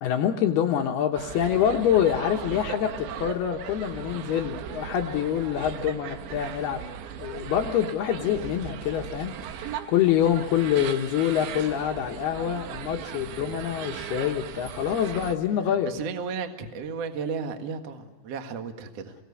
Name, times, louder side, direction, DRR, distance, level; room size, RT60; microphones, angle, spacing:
voice 1, 0.0-6.8 7.2-15.9, left 10 dB, 70° left, 3 dB, 2.6 m, -26 dB
sound 1, 1.2-15.4, right 9 dB, 75° right, 3.2 m, -37 dB
voice 2, 15.8-19.2, right 5 dB, 55° right, 6 dB, 1.8 m, -34 dB
28.0 x 19.5 x 8.4 m, 1.3 s
omnidirectional pair, 5.5 m